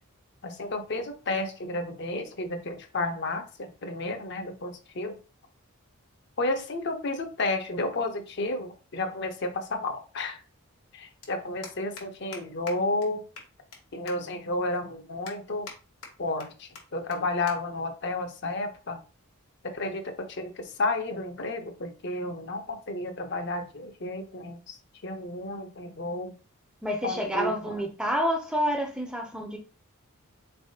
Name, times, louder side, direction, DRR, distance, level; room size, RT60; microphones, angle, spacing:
voice 1, 0.4-5.2 6.4-10.4 10.9-13.2 13.9-15.7 16.2-19.0 19.6-26.3 27.0-27.5, left 2 dB, 50° left, 5 dB, 0.7 m, -32 dB
sound 1, 11.2-11.3 11.6-12.0 12.3-12.4 12.7-12.8 13.0-13.1 13.4-13.8 14.1-14.2 14.6-14.7 15.3-15.8 16.0-16.5 16.8-16.9 17.1-17.2 17.5-17.6 17.9-18.1 18.9-19.1, left 5 dB, 85° left, 1.1 m, -43 dB
voice 2, 26.8-29.6, equal, 5° right, 2 dB, 0.5 m, -28 dB
4.0 x 3.4 x 2.7 m, 0.35 s
head